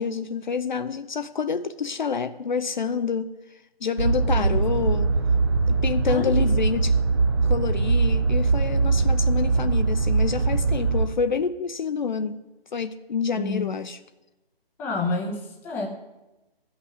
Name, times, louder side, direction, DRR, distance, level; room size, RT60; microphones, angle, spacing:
voice 1, 0.0-5.1 5.7-7.0 7.4-12.4 12.7-14.0, left 6 dB, 50° left, 10 dB, 0.6 m, -28 dB
sound 1, 4.0-11.1, right 4 dB, 25° right, 0.5 m, -22 dB
voice 2, 13.4-13.7 14.8-15.9, left 3 dB, 5° left, 0 dB, 0.8 m, -29 dB
13.0 x 5.9 x 9.3 m, 1.0 s
figure-of-eight pair, 145°, 30 cm